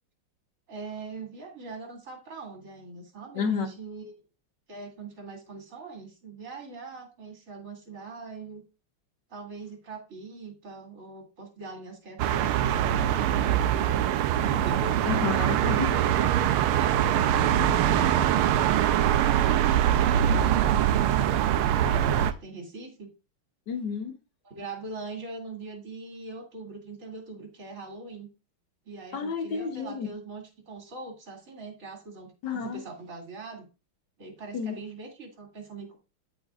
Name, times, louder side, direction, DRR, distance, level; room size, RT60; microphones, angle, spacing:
voice 1, 0.7-4.1 4.7-8.6 9.3-14.9 15.9-16.1 16.7-21.6 21.8-23.1 24.4-28.3 28.8-33.7 34.2-36.0, right 3 dB, 35° right, -1 dB, 3.1 m, -42 dB
voice 2, 3.3-3.7 15.1-16.0 23.7-24.1 29.1-30.1 32.4-32.8 34.5-34.8, left 6 dB, 60° left, 6 dB, 1.6 m, -30 dB
sound 1, 12.2-22.3, right 10 dB, 90° right, 1.5 m, -23 dB
13.0 x 5.1 x 2.5 m, 0.31 s
omnidirectional pair, 2.3 m